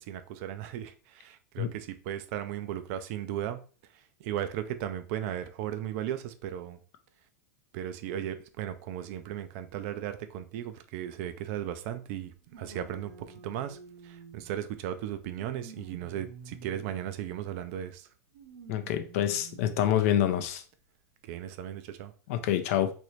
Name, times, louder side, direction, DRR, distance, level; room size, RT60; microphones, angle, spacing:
voice 1, 0.0-3.6 4.2-6.8 7.7-13.8 14.0-18.1 21.2-22.1, right 11 dB, 50° right, 0.4 m, -36 dB
sound 1, 11.3-11.4 12.5-14.6 15.1-17.2 18.3-19.8 20.5-20.6 21.7-21.8, right 4 dB, 75° right, 1.0 m, -50 dB
voice 2, 18.7-20.6 22.3-22.9, left 11 dB, 55° left, 0.5 m, -27 dB
3.1 x 2.6 x 3.0 m
hypercardioid pair, 100°, 9 cm